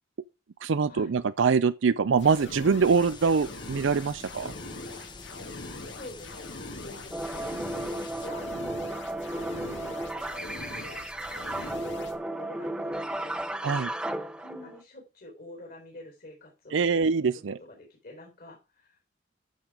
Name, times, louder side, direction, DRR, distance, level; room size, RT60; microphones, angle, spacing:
voice 1, 0.6-4.5 13.6-13.9 16.7-17.6, right 5 dB, 85° right, 0.5 m, -24 dB
sound 1, 2.2-12.2, left 2 dB, 75° left, 2.0 m, -42 dB
sound 2, 2.8-8.3, left 3 dB, 25° left, 1.0 m, -46 dB
voice 2, 5.9-8.7 9.2-10.7 11.5-13.4 14.0-19.2, left 1 dB, 55° left, 4.1 m, -48 dB
sound 3, 7.1-14.8, right 1 dB, 5° right, 0.7 m, -34 dB
12.0 x 6.8 x 4.8 m
head